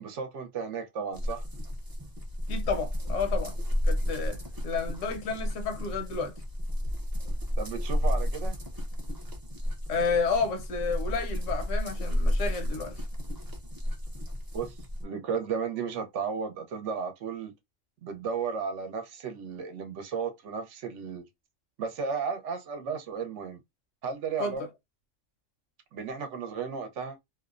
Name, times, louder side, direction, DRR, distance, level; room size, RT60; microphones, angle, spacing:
voice 1, 0.0-1.4 7.6-8.6 14.5-14.7 15.0-17.5 18.0-21.3 21.8-23.6 24.0-24.6 25.9-27.2, right 6 dB, 70° right, 0.9 m, -34 dB
sound 1, 1.1-15.0, equal, 25° right, 0.5 m, -32 dB
voice 2, 2.5-3.5 3.8-6.3 9.9-13.0 24.4-24.7, left 4 dB, 80° left, 1.0 m, -31 dB
2.7 x 2.0 x 2.4 m
omnidirectional pair, 1.3 m